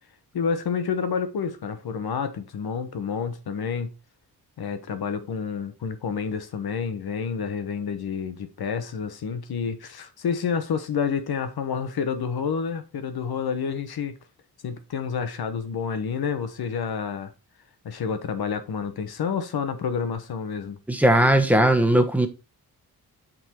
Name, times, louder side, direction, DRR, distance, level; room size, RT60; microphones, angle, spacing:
voice 1, 0.3-3.9 4.6-14.1 14.6-17.3 17.8-20.8, left 6 dB, 80° left, 1.2 m, -29 dB
voice 2, 20.9-22.3, right 1 dB, 5° right, 1.3 m, -18 dB
7.9 x 4.0 x 4.5 m
wide cardioid pair, 95°, 37 cm